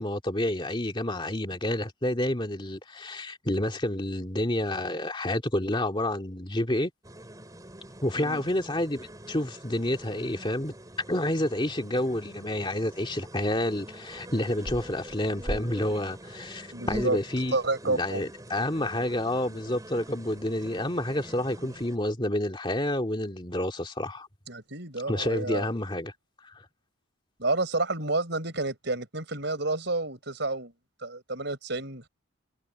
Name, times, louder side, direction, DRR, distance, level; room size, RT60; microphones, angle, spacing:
voice 1, 0.0-6.9 8.0-10.7 11.1-17.6 17.8-24.3 25.1-26.1 26.4-26.5, left 1 dB, 25° left, 2.2 m, -29 dB
sound 1, 7.0-22.0, equal, 20° right, 3.4 m, -43 dB
voice 2, 16.7-17.2 17.5-18.2 21.6-21.7 24.5-25.7 27.4-30.7 31.0-32.1, right 2 dB, 60° right, 6.6 m, -30 dB
head